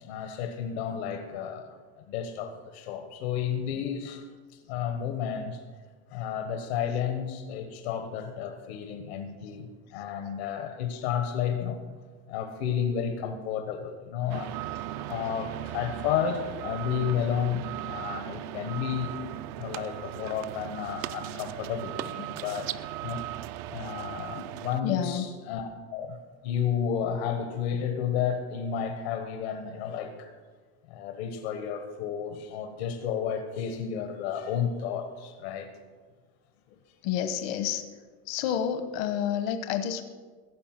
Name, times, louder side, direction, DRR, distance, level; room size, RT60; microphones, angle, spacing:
voice 1, 0.0-1.7 2.1-4.3 4.7-5.6 6.1-11.8 12.3-14.5 14.9-19.1 19.6-22.7 23.0-23.2 23.7-26.2 26.4-30.3 30.9-35.7, left 8 dB, 90° left, 6 dB, 1.4 m, -32 dB
sound 1, 14.3-24.8, right 14 dB, 60° right, 0.5 m, -37 dB
voice 2, 24.8-25.4 37.0-37.8 38.3-40.0, left 9 dB, 75° left, 9 dB, 1.1 m, -29 dB
15.5 x 7.2 x 6.0 m, 1.4 s
supercardioid pair, 140°, 31 cm